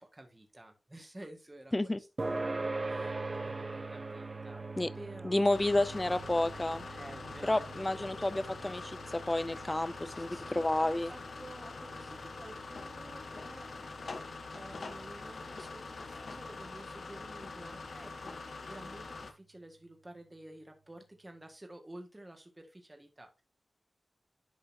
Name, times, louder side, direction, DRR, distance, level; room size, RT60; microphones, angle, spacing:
voice 1, 0.0-2.1 2.6-4.6 4.9-5.5 6.9-8.9 10.1-23.4, right 1 dB, 15° right, 1.7 m, -52 dB
sound 1, 2.2-17.1, right 3 dB, 35° right, 0.6 m, -43 dB
voice 2, 5.2-6.9 7.4-8.8 9.1-11.1, left 1 dB, 20° left, 0.5 m, -30 dB
sound 2, 5.5-19.3, left 3 dB, 75° left, 1.1 m, -44 dB
10.5 x 5.4 x 2.7 m
wide cardioid pair, 115°, 0 cm